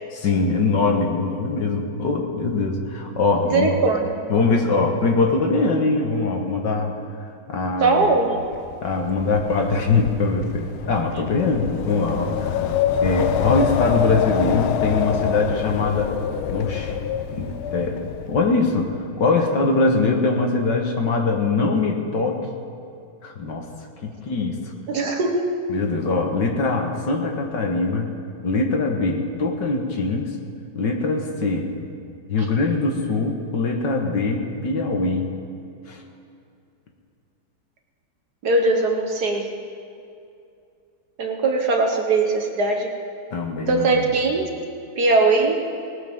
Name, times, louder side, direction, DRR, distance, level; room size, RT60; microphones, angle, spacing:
voice 1, 0.1-3.7 4.3-6.9 7.5-8.2 8.8-12.7 13.0-16.2 16.5-16.9 17.3-18.0 18.3-18.9 19.2-22.4 23.2-23.7 24.0-24.7 25.7-28.1 28.4-30.4 30.8-31.7 32.3-35.3 35.9-36.0 43.3-44.0, left 3 dB, 60° left, 2 dB, 1.8 m, -22 dB
voice 2, 3.5-4.1 7.8-8.4 24.9-25.6 38.4-39.5 41.2-43.0 43.7-44.5 45.0-45.7, right 3 dB, 55° right, 2 dB, 1.5 m, -20 dB
Wind, 8.5-18.6, left 8 dB, 85° left, 1.5 m, -26 dB
19.5 x 18.0 x 3.6 m, 2.5 s
omnidirectional pair, 2.3 m